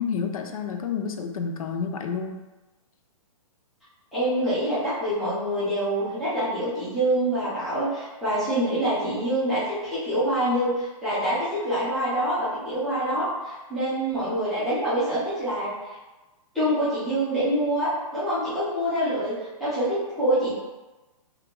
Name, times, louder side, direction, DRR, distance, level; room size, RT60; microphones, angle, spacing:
voice 1, 0.0-2.4, left 6 dB, 75° left, 5 dB, 0.4 m, -29 dB
voice 2, 4.1-15.7 16.5-19.3 19.6-20.5, right 1 dB, ahead, -15 dB, 0.4 m, -25 dB
2.5 x 2.1 x 2.8 m, 1.1 s
hypercardioid pair, 175°, 18 cm